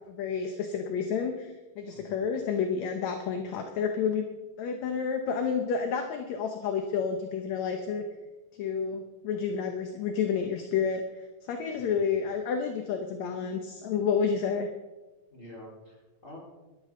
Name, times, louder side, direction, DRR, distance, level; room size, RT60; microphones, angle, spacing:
voice 1, 0.1-4.3 4.6-8.0 8.6-14.7, left 6 dB, 70° left, 5 dB, 2.1 m, -30 dB
voice 2, 1.9-2.2 11.7-12.1 15.3-16.4, left 1 dB, 20° left, -4 dB, 4.4 m, -48 dB
17.5 x 13.0 x 3.8 m, 1.1 s
omnidirectional pair, 3.7 m